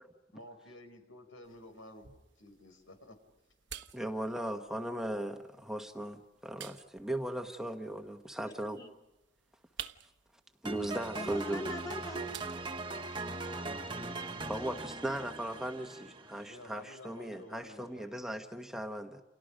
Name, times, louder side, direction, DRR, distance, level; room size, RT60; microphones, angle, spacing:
voice 1, 0.3-2.1 2.4-3.2 16.5-18.2, left 1 dB, 90° left, 7 dB, 5.1 m, -52 dB
sound 1, 1.4-13.4, right 10 dB, 60° right, 1.2 m, -53 dB
voice 2, 3.9-8.8 10.6-11.7 14.5-19.2, right 1 dB, ahead, 4 dB, 1.3 m, -38 dB
voice 3, 8.4-8.9 11.1-12.2 13.2-14.3, left 2 dB, 20° left, 2 dB, 3.2 m, -44 dB
sound 2, 10.7-16.8, right 3 dB, 25° right, 1.5 m, -40 dB
30.0 x 29.0 x 5.2 m, 1.0 s
head